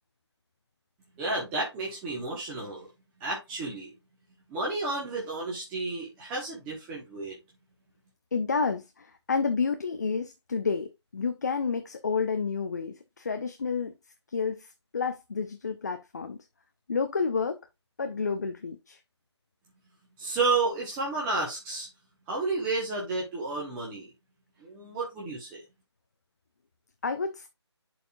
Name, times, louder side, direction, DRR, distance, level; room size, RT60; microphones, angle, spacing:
voice 1, 1.2-2.9 3.2-3.9 4.5-7.4 20.2-21.9 22.3-24.1 24.6-25.6, right 3 dB, 10° right, 1.3 m, -31 dB
voice 2, 8.3-13.9 14.3-16.4 16.9-17.6 18.0-19.0 27.0-27.5, left 5 dB, 35° left, 0.7 m, -30 dB
11.0 x 4.3 x 2.5 m
figure-of-eight pair, 155°, 15 cm